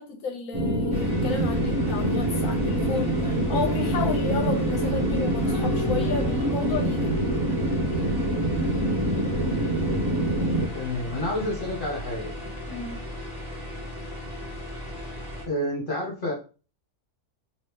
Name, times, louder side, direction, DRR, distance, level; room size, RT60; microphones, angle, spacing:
voice 1, 0.0-7.1 12.7-13.1, left 4 dB, 70° left, 0.9 m, -32 dB
sound 1, 0.5-10.7, right 1 dB, 25° right, 0.9 m, -25 dB
sound 2, 0.9-15.4, left 1 dB, 5° right, 1.5 m, -37 dB
sound 3, 3.2-14.0, left 2 dB, 80° right, 1.5 m, -40 dB
voice 2, 10.7-12.3 15.5-16.3, left 1 dB, 40° left, 1.0 m, -29 dB
3.0 x 3.0 x 3.4 m
omnidirectional pair, 1.6 m